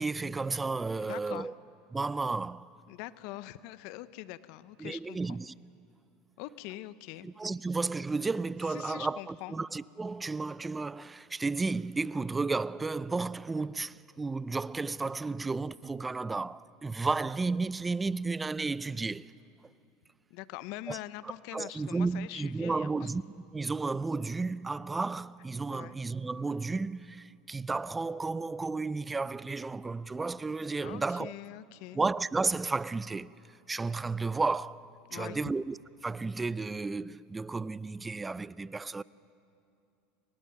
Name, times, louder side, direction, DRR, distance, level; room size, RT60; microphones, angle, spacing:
voice 1, 0.0-1.5 1.9-2.7 4.8-5.5 7.2-19.3 20.9-21.0 21.5-23.2 23.5-31.3 31.9-33.3 33.7-34.9 35.1-35.8 36.0-39.0, right 3 dB, 15° right, 0.4 m, -33 dB
voice 2, 1.0-1.5 2.9-5.4 6.4-7.3 8.6-9.5 20.3-23.1 25.7-25.9 30.8-32.0 35.1-35.5, left 16 dB, 60° left, 0.7 m, -43 dB
29.0 x 18.0 x 5.9 m
hypercardioid pair, 90°, 0 cm